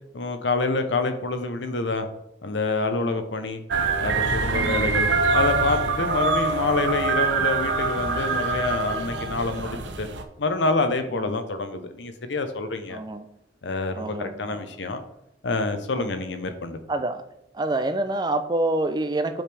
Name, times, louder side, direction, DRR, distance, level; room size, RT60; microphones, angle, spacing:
voice 1, 0.1-2.1 2.4-3.6 4.0-10.1 10.4-13.0 13.6-15.0 15.4-16.8, left 3 dB, 70° left, 8 dB, 0.7 m, -27 dB
sound 1, 3.7-10.2, right 4 dB, 75° right, 0.6 m, -24 dB
voice 2, 4.5-5.0 11.1-11.5 12.9-13.3 13.9-14.6 15.9-16.1 16.9-17.2 17.5-19.4, right 2 dB, 20° right, 9 dB, 0.4 m, -27 dB
7.2 x 5.1 x 3.4 m, 0.81 s
head